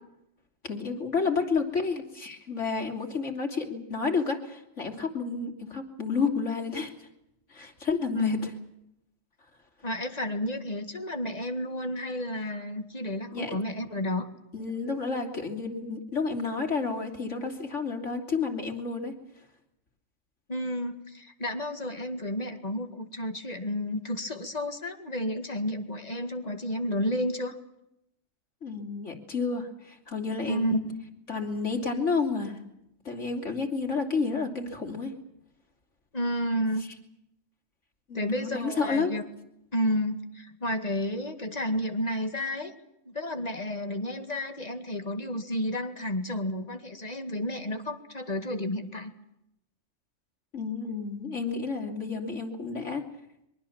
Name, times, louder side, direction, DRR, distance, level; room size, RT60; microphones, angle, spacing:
voice 1, 0.6-7.1 7.5-8.5 13.3-13.6 14.5-19.1 28.6-30.8 31.3-32.6 33.1-35.1 38.1-39.2 50.5-53.1, left 4 dB, 75° left, 3 dB, 3.5 m, -30 dB
voice 2, 8.1-8.5 9.8-14.3 20.5-27.5 30.5-31.0 36.1-36.9 38.1-39.2 39.7-42.7 43.1-49.1, equal, 35° left, 6 dB, 2.2 m, -31 dB
23.5 x 23.0 x 7.3 m, 0.81 s
omnidirectional pair, 1.3 m